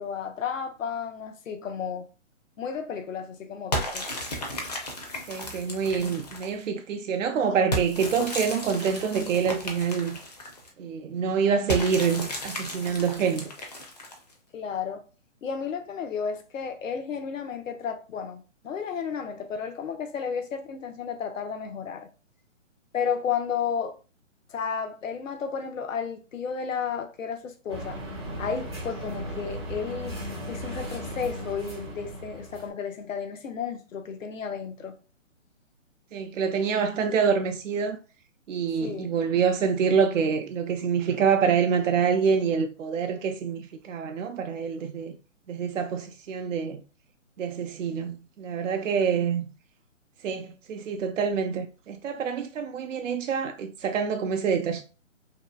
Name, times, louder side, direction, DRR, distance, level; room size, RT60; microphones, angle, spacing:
voice 1, 0.0-2.1 2.6-4.1 14.5-15.0 15.4-22.1 22.9-24.0 24.5-28.0 28.4-30.2 30.5-35.0 38.8-39.1, left 6 dB, 80° left, 0.6 m, -32 dB
sound 1, 3.7-6.6 7.7-10.7 11.7-14.3, left 1 dB, 35° left, 0.5 m, -34 dB
voice 2, 5.3-10.2 10.8-13.5 36.1-38.0 38.5-45.2 45.5-46.8 47.4-49.5 50.2-54.8, right 6 dB, 75° right, 0.5 m, -26 dB
sound 2, 27.7-32.7, equal, 20° right, 0.4 m, -36 dB
2.7 x 2.3 x 2.2 m
hypercardioid pair, 150°, 39 cm